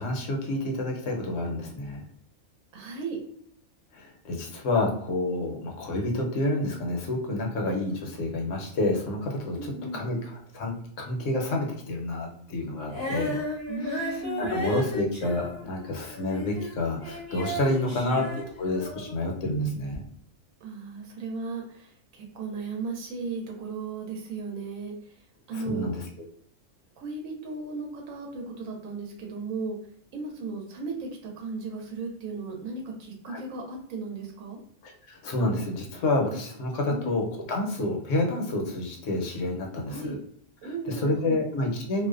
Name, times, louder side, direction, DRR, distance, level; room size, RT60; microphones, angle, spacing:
voice 1, 0.0-2.0 3.9-13.4 13.8-20.0 25.5-26.1 33.3-33.4 34.8-40.2 40.6-42.1, left 2 dB, 70° left, 0 dB, 1.0 m, -29 dB
voice 2, 2.7-3.2 9.6-10.1 13.7-14.6 17.8-18.3 20.6-24.9 25.5-25.9 27.0-29.8 30.1-34.6 36.9-37.2 39.9-40.2 40.6-41.4, right 3 dB, 85° right, 1 dB, 1.0 m, -36 dB
Female singing, 12.9-19.2 19.9-20.0, equal, 25° left, 0.5 m, -34 dB
2.5 x 2.1 x 2.3 m, 0.62 s
omnidirectional pair, 1.4 m